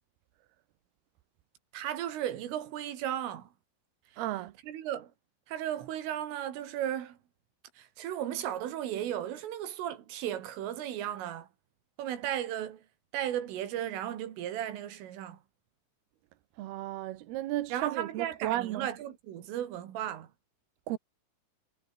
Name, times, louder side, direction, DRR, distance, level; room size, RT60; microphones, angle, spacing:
voice 1, 1.7-3.5 4.1-4.2 4.6-5.1 5.5-7.2 7.8-11.5 12.0-12.9 13.1-15.4 17.7-20.3, right 11 dB, 85° right, 4.9 m, -35 dB
voice 2, 4.2-4.5 16.6-18.9 20.9-21.0, right 15 dB, 70° right, 2.6 m, -34 dB
omnidirectional pair, 5.6 m